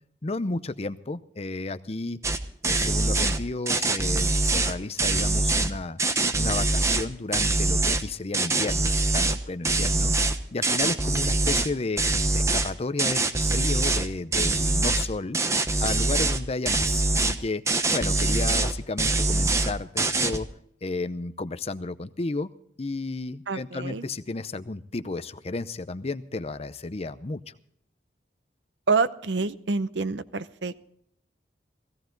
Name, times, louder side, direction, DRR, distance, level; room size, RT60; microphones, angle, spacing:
voice 1, 0.2-2.2 2.6-6.0 6.4-10.2 10.5-12.0 12.3-15.4 15.8-17.6 17.9-20.5 20.8-22.5 22.8-27.5, left 3 dB, 35° left, 14 dB, 0.6 m, -32 dB
sound 1, 2.2-2.4 2.6-3.4 3.7-5.7 6.0-7.0 7.3-8.0 8.3-9.4 9.6-11.7 12.0-12.7 13.0-14.1 14.3-15.1 15.3-16.4 16.7-17.3 17.7-18.7 19.0-19.7 20.0-20.4, right 2 dB, 15° right, 0.9 m, -24 dB
voice 2, 23.5-24.0 28.9-30.8, right 4 dB, 85° right, 14 dB, 0.8 m, -27 dB
16.5 x 16.5 x 3.9 m, 0.69 s
head